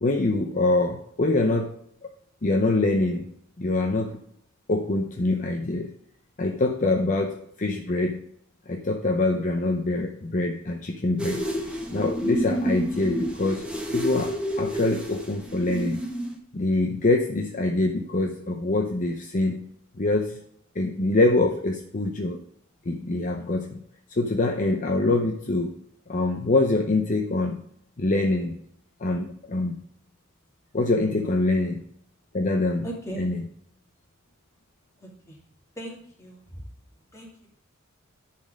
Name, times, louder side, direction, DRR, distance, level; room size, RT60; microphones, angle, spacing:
voice 1, 0.0-1.7 2.4-3.3 3.6-4.2 4.7-5.9 6.4-8.2 8.7-11.4 11.9-13.6 13.9-16.0 16.5-19.6 20.0-20.4 20.7-22.4 22.9-23.8 24.2-25.7 26.1-27.6 28.0-28.6 29.0-29.8 30.7-31.8 32.3-32.9 33.2-33.4, left 2 dB, 35° left, 3 dB, 0.7 m, -24 dB
sound 1, 11.2-16.4, equal, 5° right, 1.2 m, -29 dB
voice 2, 32.8-33.3 35.0-35.4 35.7-36.7 37.1-37.5, right 1 dB, 15° left, -2 dB, 2.3 m, -39 dB
10.5 x 4.3 x 5.0 m, 0.68 s
head